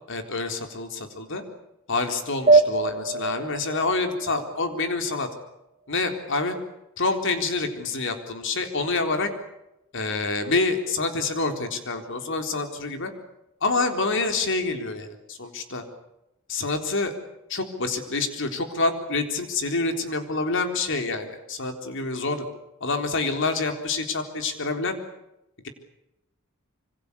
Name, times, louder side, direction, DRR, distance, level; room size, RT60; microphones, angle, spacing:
voice 1, 0.1-1.4 1.9-5.3 5.9-6.6 7.0-9.3 9.9-13.1 13.6-15.8 16.5-17.1 17.5-22.5 22.8-25.0, left 3 dB, 60° left, 6 dB, 3.9 m, -27 dB
sound 1, 2.5-5.4, right 3 dB, 30° right, 2.5 m, -23 dB
26.0 x 25.0 x 6.9 m, 0.88 s
head